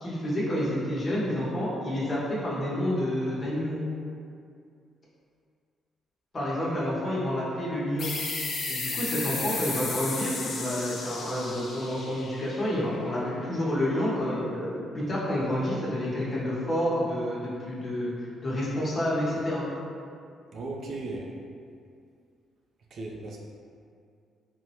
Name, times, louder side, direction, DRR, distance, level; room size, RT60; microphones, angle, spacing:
voice 1, 0.0-3.8 6.3-8.1 8.7-18.1 18.4-19.6, left 1 dB, 40° left, -8 dB, 0.9 m, -29 dB
sound 1, 8.0-13.3, left 3 dB, 60° left, 0.5 m, -34 dB
voice 2, 20.5-21.3 22.9-23.4, right 2 dB, 60° right, -1 dB, 0.4 m, -36 dB
3.4 x 2.1 x 2.8 m, 2.4 s
cardioid pair, 90°, 0 cm